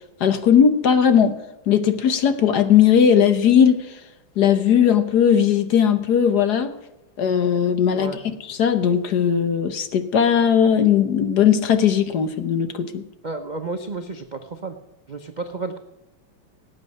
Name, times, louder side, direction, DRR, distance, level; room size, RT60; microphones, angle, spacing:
voice 1, 0.2-1.4 1.7-4.0 4.4-6.7 7.2-8.1 8.5-13.0, left 8 dB, 60° left, 10 dB, 1.3 m, -18 dB
voice 2, 13.2-14.8 15.1-15.8, right 3 dB, 70° right, 5 dB, 0.4 m, -31 dB
18.0 x 8.4 x 5.4 m, 0.96 s
omnidirectional pair, 2.3 m